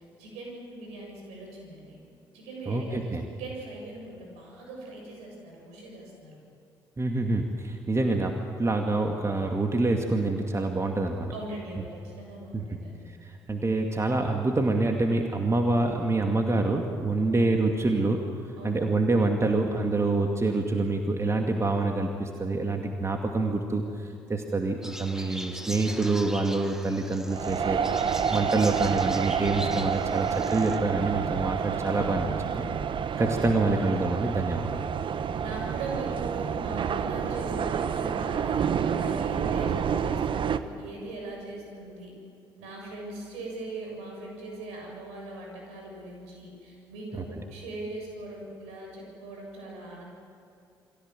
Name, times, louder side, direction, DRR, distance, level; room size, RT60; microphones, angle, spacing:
voice 1, 0.0-2.0 2.3-6.4 11.3-13.1 17.1-17.4 18.6-18.9 35.4-42.1 42.6-50.0, right 2 dB, 65° right, 0 dB, 7.5 m, -40 dB
voice 2, 2.7-3.3 7.0-11.3 12.5-12.6 13.2-18.3 18.6-27.8 28.3-32.7 33.2-34.8, right 2 dB, 25° right, 3 dB, 2.4 m, -26 dB
sound 1, 24.8-30.8, equal, 5° right, 2.0 m, -40 dB
sound 2, 27.3-40.6, right 7 dB, 45° right, 1.1 m, -29 dB
29.0 x 23.0 x 7.6 m, 2.5 s
figure-of-eight pair, 45°, 12 cm